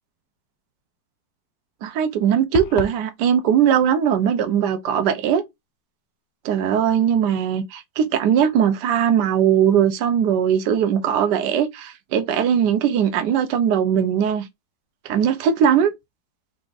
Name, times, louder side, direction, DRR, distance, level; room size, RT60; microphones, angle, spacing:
voice 1, 1.8-5.4 6.4-14.4 15.0-15.9, right 8 dB, 70° right, 1.3 m, -20 dB
sound 1, 2.5-3.0, left 6 dB, 70° left, 1.0 m, -29 dB
4.7 x 2.5 x 3.9 m
omnidirectional pair, 1.9 m